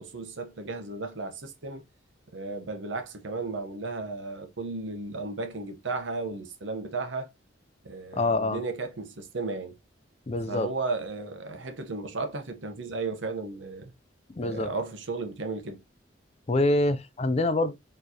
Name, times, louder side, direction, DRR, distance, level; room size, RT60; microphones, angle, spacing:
voice 1, 0.0-1.8 2.3-7.3 7.8-9.8 10.5-13.9 14.4-15.8, right 3 dB, 75° right, 0.9 m, -34 dB
voice 2, 8.1-8.6 10.3-10.7 14.4-14.7 16.5-17.7, left 2 dB, 35° left, 0.4 m, -25 dB
4.5 x 3.1 x 2.8 m
head